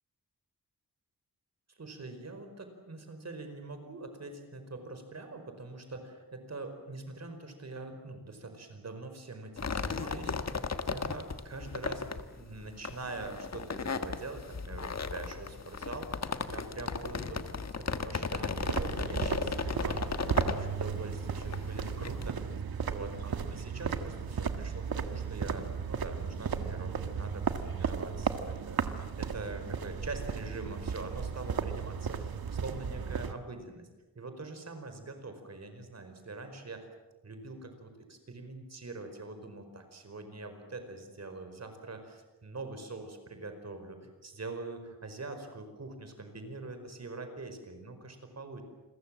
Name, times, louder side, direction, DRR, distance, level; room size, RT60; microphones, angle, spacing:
voice 1, 1.7-12.0 12.4-22.5 22.9-33.9 34.1-36.9 37.2-48.6, right 3 dB, 45° right, 7 dB, 4.9 m, -44 dB
sound 1, 9.6-22.3, left 5 dB, 45° left, 1.6 m, -36 dB
sound 2, 18.6-33.3, right 6 dB, 85° right, 1.7 m, -35 dB
28.5 x 22.5 x 7.6 m, 1.2 s
wide cardioid pair, 135°, 35 cm